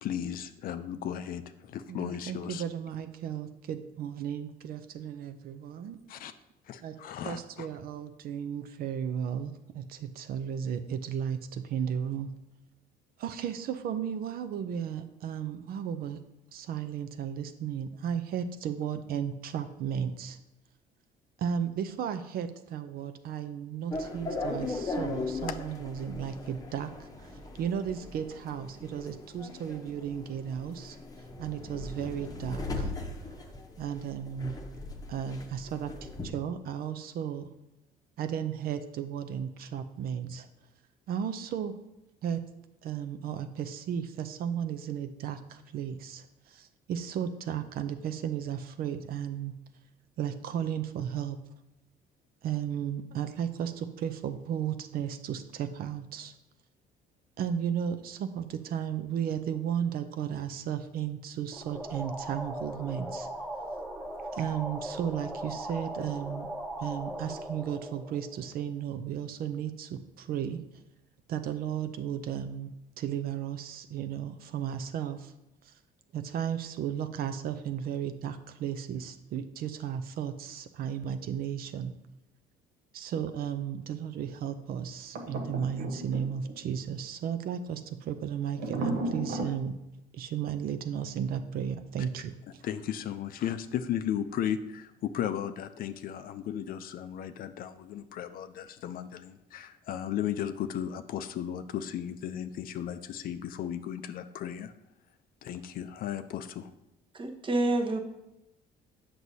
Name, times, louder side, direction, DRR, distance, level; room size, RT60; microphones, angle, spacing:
voice 1, 0.0-2.6 6.1-6.3 6.7-7.7 92.6-104.7 105.4-106.7, left 10 dB, 60° left, 11 dB, 0.5 m, -35 dB
voice 2, 1.9-6.0 6.8-7.0 7.2-12.3 13.2-16.2 16.5-20.4 21.4-27.3 27.6-31.0 31.4-32.9 33.8-34.6 35.1-37.5 38.2-40.5 41.1-41.7 42.2-42.4 42.8-49.5 50.2-51.4 52.4-56.3 57.4-63.3 64.3-66.5 66.8-70.6 71.3-75.3 75.6-75.7 76.1-81.9 82.9-89.7 90.1-92.6, right 8 dB, 60° right, 9 dB, 0.5 m, -34 dB
sound 1, 23.9-36.3, left 2 dB, 20° left, 0.8 m, -39 dB
sound 2, 61.5-68.9, right 1 dB, 15° right, 1.2 m, -39 dB
sound 3, 85.2-86.6 88.6-89.6, right 2 dB, 80° right, 1.0 m, -34 dB
voice 3, 107.1-108.0, right 2 dB, 30° right, 3 dB, 0.9 m, -28 dB
7.7 x 6.1 x 2.7 m, 0.91 s
cardioid pair, 110°, 17 cm